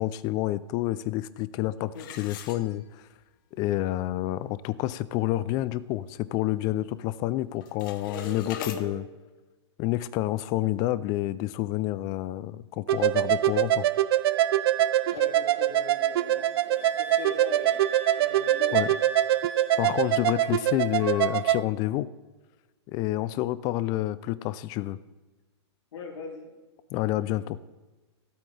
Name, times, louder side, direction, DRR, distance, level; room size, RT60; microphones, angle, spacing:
voice 1, 0.0-3.0 3.6-9.0 9.8-13.9 18.7-18.9 19.8-22.1 22.9-25.0 26.9-27.6, left 15 dB, 25° left, 17 dB, 0.4 m, -29 dB
sound 1, 1.9-3.2 3.7-3.8 4.3-4.4 4.8-5.1 5.6-6.7 6.9-7.3 7.5-8.8, left 10 dB, 45° left, 0.9 m, -43 dB
voice 2, 8.0-9.0 15.1-18.8 25.9-26.5 27.2-27.5, left 3 dB, 70° left, -1 dB, 3.2 m, -40 dB
sound 2, 12.9-21.6, right 12 dB, 55° right, 0.4 m, -24 dB
Wind instrument woodwind instrument, 14.3-20.7 21.0-21.6, right 5 dB, 80° right, 2.5 m, -39 dB
16.0 x 8.7 x 3.3 m, 1.2 s
hypercardioid pair, 150°, 15 cm